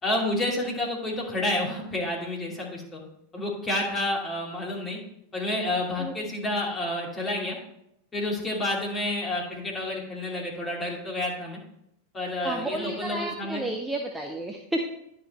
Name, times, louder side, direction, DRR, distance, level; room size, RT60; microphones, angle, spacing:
voice 1, 0.0-3.0 3.3-5.0 5.3-7.6 8.1-11.6 12.1-13.6, left 1 dB, 20° left, -2 dB, 2.6 m, -29 dB
voice 2, 12.4-14.9, right 1 dB, 5° right, 1 dB, 0.8 m, -31 dB
10.0 x 5.5 x 4.2 m, 0.77 s
figure-of-eight pair, 90°, 0 cm